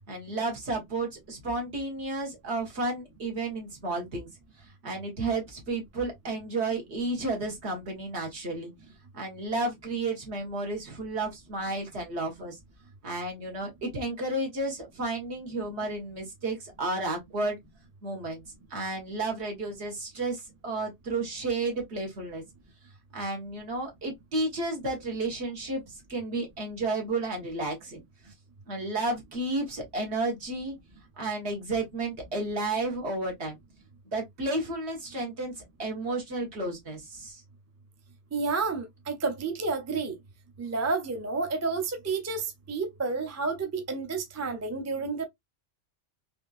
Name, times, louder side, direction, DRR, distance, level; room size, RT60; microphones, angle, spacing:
voice 1, 0.1-4.3 4.6-8.7 9.1-12.6 13.0-17.6 18.0-18.4 18.7-22.4 23.1-28.3 28.7-30.7 31.2-33.6 34.1-37.4, right 2 dB, 65° right, 1.6 m, -32 dB
voice 2, 38.3-40.1 40.6-45.3, right 4 dB, 20° right, 0.4 m, -30 dB
3.5 x 2.7 x 2.4 m
omnidirectional pair, 1.2 m